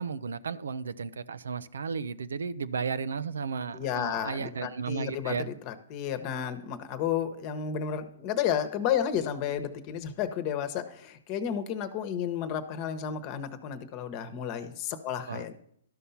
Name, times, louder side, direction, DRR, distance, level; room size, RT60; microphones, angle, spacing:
voice 1, 0.0-5.5 15.3-15.4, right 5 dB, 80° right, 15 dB, 0.5 m, -34 dB
voice 2, 3.7-15.5, left 9 dB, 40° left, 10 dB, 1.1 m, -32 dB
12.5 x 5.6 x 5.7 m, 0.69 s
hypercardioid pair, 125°, 0 cm